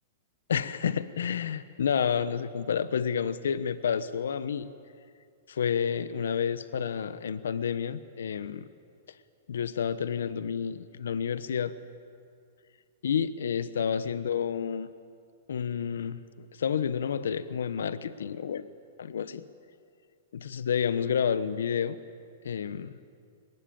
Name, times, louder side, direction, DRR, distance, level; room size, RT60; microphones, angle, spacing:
voice 1, 0.5-4.7 5.5-8.7 9.5-11.7 13.0-14.9 15.5-18.7 19.0-19.4 20.3-22.0 22.4-22.9, left 7 dB, 80° left, 14 dB, 1.0 m, -30 dB
22.0 x 21.0 x 8.8 m, 2.3 s
hypercardioid pair, 125°, 0 cm